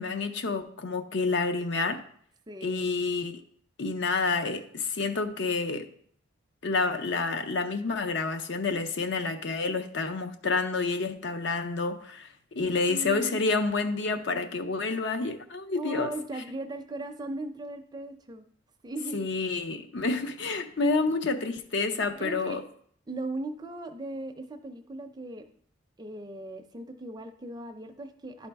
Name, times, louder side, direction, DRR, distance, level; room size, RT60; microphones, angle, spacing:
voice 1, 0.0-2.0 2.6-3.4 3.8-5.9 6.6-16.1 19.1-22.6, left 3 dB, 55° left, 0.6 m, -29 dB
voice 2, 2.5-2.9 12.9-13.5 15.8-18.4 18.8-19.3 22.2-22.6 23.1-25.4 26.0-28.5, right 2 dB, 20° right, 0.5 m, -38 dB
11.0 x 4.1 x 3.4 m
head